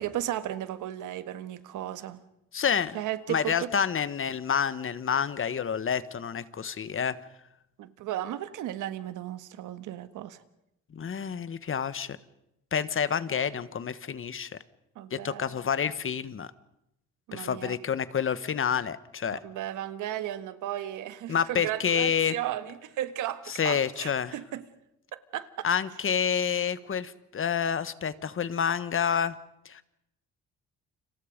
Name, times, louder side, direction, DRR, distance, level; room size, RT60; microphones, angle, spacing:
voice 1, 0.0-2.2 2.9-3.7 7.8-10.4 14.9-15.6 17.3-17.8 19.3-24.6 25.1-25.7, right 12 dB, 90° right, 1.5 m, -35 dB
voice 2, 2.5-3.0 3.3-7.1 10.9-12.2 12.7-14.5 15.1-16.5 17.3-19.4 21.3-22.3 23.5-24.3 25.6-29.3 29.6-29.8, left 7 dB, 45° left, 1.4 m, -28 dB
29.5 x 26.5 x 5.2 m
cardioid pair, 90°, 30 cm